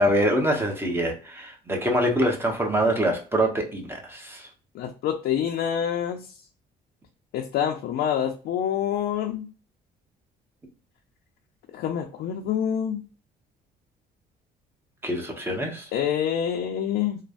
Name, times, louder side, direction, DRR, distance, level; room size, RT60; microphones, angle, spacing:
voice 1, 0.0-4.5 15.0-15.9, equal, 15° right, 0.9 m, -24 dB
voice 2, 4.7-6.2 7.3-9.5 11.7-13.0 15.9-17.2, left 9 dB, 70° left, 0.5 m, -26 dB
3.1 x 2.2 x 2.4 m
cardioid pair, 110°, 17 cm